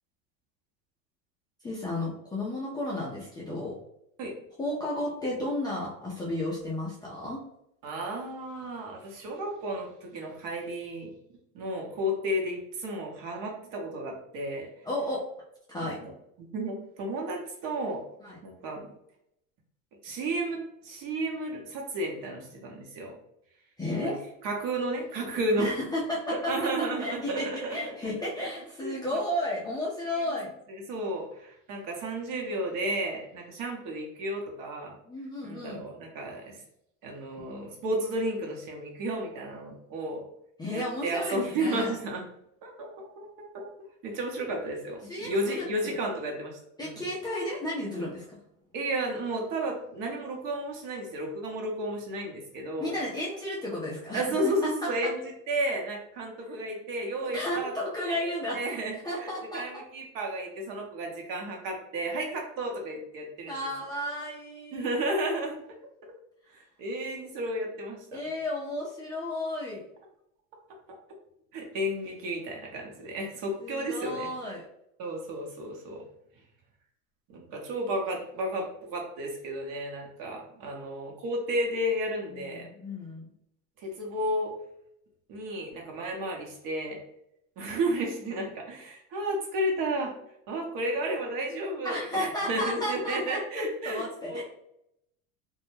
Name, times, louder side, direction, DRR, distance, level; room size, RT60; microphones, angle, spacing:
voice 1, 1.6-3.8 4.6-7.4 14.8-15.2 15.7-16.0 18.2-18.4 23.8-24.2 25.6-26.5 27.0-30.5 35.0-35.8 40.6-42.0 45.0-46.0 46.8-48.4 52.8-54.9 57.3-58.8 59.0-59.8 63.5-64.9 68.1-69.8 73.6-74.6 82.3-83.3 91.8-94.4, left 1 dB, 10° left, -6 dB, 0.4 m, -33 dB
voice 2, 7.8-11.1 11.5-14.7 15.8-16.1 16.4-18.0 18.4-18.8 20.0-23.2 23.9-24.1 24.4-25.7 26.3-28.5 28.8-29.2 30.2-30.3 30.7-35.0 35.4-36.6 37.0-40.2 40.7-42.2 42.6-43.3 43.5-43.7 44.0-47.0 48.7-52.9 54.1-55.2 55.5-63.7 64.7-65.6 66.5-68.2 71.5-74.3 75.0-76.0 77.3-82.7 83.8-84.5 85.3-87.0 87.6-90.1 90.5-94.0 94.3-94.4, right 1 dB, 50° right, 1 dB, 0.9 m, -32 dB
2.3 x 2.0 x 3.1 m, 0.78 s
hypercardioid pair, 95°, 42 cm